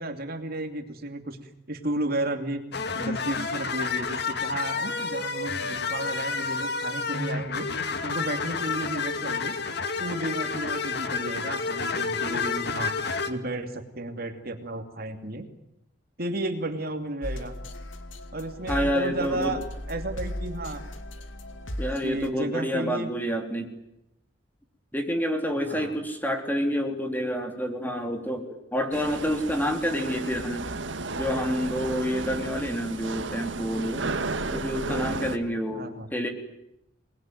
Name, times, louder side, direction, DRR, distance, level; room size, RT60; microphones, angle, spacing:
voice 1, 0.0-1.4 1.7-2.6 2.9-7.7 8.0-9.6 10.0-12.9 13.3-15.5 16.2-17.6 18.3-19.6 19.9-20.8 21.8-23.1 25.6-26.0 35.7-36.1, right 1 dB, 55° right, 6 dB, 2.8 m, -33 dB
sound 1, 2.7-13.3, left 4 dB, 60° left, 2.2 m, -30 dB
sound 2, 17.2-22.3, left 1 dB, 90° left, 2.6 m, -37 dB
voice 2, 18.7-19.6 21.8-23.7 24.9-30.7 31.2-34.0 34.5-36.3, equal, 10° left, 4 dB, 3.5 m, -28 dB
sound 3, 28.9-35.4, right 3 dB, 75° right, 1.8 m, -33 dB
28.0 x 21.0 x 9.3 m, 0.85 s
head